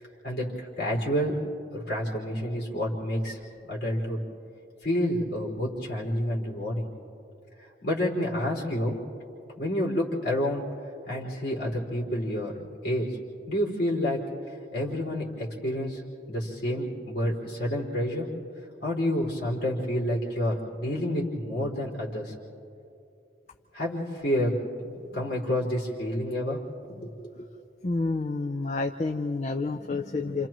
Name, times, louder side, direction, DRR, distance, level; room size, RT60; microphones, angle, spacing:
voice 1, 0.2-1.4 1.7-3.4 3.7-4.2 4.8-6.9 7.6-9.0 9.6-10.6 11.1-13.2 13.5-14.2 14.7-16.0 16.3-18.3 18.8-22.3 23.7-24.5 25.1-26.6 26.9-27.5, left 1 dB, 55° left, -5 dB, 4.5 m, -29 dB
voice 2, 27.8-30.5, left 3 dB, 40° left, 5 dB, 0.5 m, -29 dB
29.5 x 28.0 x 3.1 m, 2.7 s
head